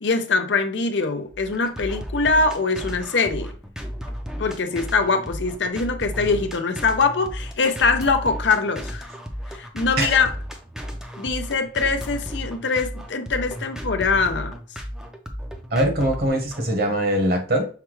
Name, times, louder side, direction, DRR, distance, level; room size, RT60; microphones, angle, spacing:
voice 1, 0.0-3.5 4.4-9.1 9.5-10.3 11.2-14.5, left 4 dB, 70° left, 0.6 m, -23 dB
sound 1, 1.3-16.7, equal, 5° right, 0.5 m, -34 dB
voice 2, 15.7-17.7, right 1 dB, 55° right, 1.1 m, -22 dB
5.7 x 2.2 x 3.1 m
head